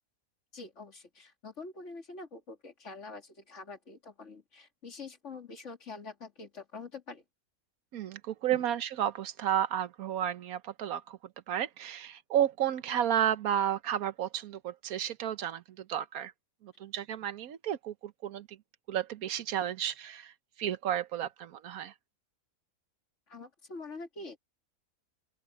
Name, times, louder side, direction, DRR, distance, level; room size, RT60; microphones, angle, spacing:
voice 1, 0.5-7.2 8.5-8.6 23.3-24.4, left 3 dB, 55° left, 2.7 m, -45 dB
voice 2, 7.9-11.2 11.5-16.3 16.6-18.6 18.9-20.3 20.6-21.9, right 10 dB, 85° right, 1.3 m, -32 dB
open air
omnidirectional pair, 1.5 m